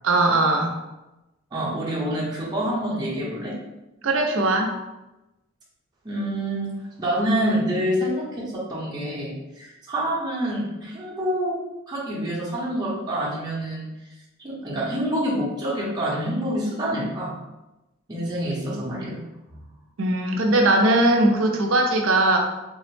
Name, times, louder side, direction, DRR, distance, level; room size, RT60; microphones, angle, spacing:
voice 1, 0.0-0.8 4.0-4.8 20.0-22.4, right 2 dB, 65° right, 2 dB, 0.5 m, -20 dB
voice 2, 1.5-3.6 6.0-6.7 7.0-11.6 11.9-13.9 14.4-17.4 18.1-19.2 19.5-19.7, equal, 20° right, -7 dB, 0.7 m, -27 dB
3.4 x 2.0 x 3.2 m, 0.99 s
head